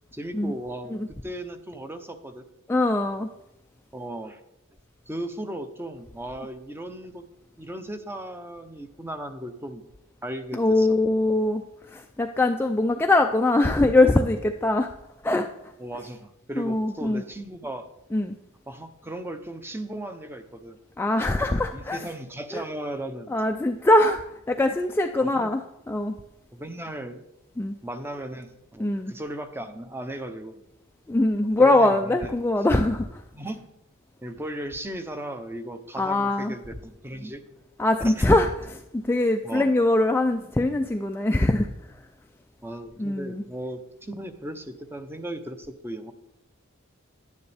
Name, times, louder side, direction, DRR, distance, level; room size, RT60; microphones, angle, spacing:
voice 1, 0.1-0.9 1.2-2.4 3.9-4.4 5.1-7.2 7.6-9.8 10.2-11.0 15.8-17.9 18.7-20.8 21.7-23.3 25.2-25.5 26.5-27.2 27.8-30.7 31.6-32.3 33.3-33.6 34.2-37.4 38.0-38.3 39.4-39.7 42.6-46.1, right 1 dB, 10° right, 9 dB, 0.7 m, -36 dB
voice 2, 2.7-3.3 10.5-14.9 15.2-15.7 16.6-17.2 18.1-18.3 21.0-22.1 22.5-22.6 23.3-26.2 27.6-27.8 28.8-29.1 31.1-33.2 36.0-36.5 37.8-42.1 43.0-43.4, left 2 dB, 10° left, 5 dB, 0.3 m, -22 dB
10.5 x 9.6 x 3.4 m, 0.88 s
head